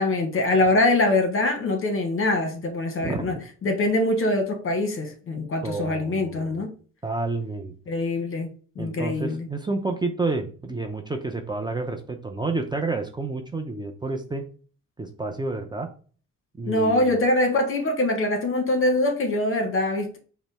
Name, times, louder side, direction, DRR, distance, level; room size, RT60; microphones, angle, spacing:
voice 1, 0.0-3.4 3.6-6.7 7.9-9.5 16.7-20.2, left 2 dB, 45° left, 1.1 m, -23 dB
voice 2, 5.6-6.6 7.0-7.7 8.8-14.4 15.0-15.9 16.6-17.2, right 3 dB, 15° right, 0.5 m, -30 dB
5.1 x 2.1 x 3.4 m
cardioid pair, 90°, 30 cm